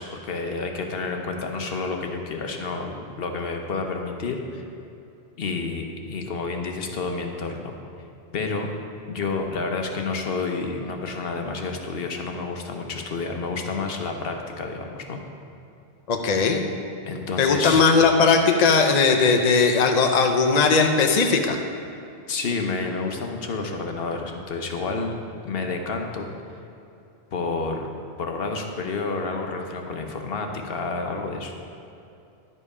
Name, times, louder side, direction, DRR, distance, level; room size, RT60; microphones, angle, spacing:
voice 1, 0.0-4.6 5.4-7.7 8.3-8.7 9.1-15.2 17.1-17.8 22.3-25.2 25.4-26.3 27.3-27.9 28.2-31.5, left 4 dB, 60° left, 4 dB, 1.0 m, -29 dB
voice 2, 16.1-16.6 17.4-21.6, left 4 dB, 45° left, 4 dB, 0.6 m, -18 dB
11.0 x 5.4 x 4.8 m, 2.8 s
omnidirectional pair, 1.1 m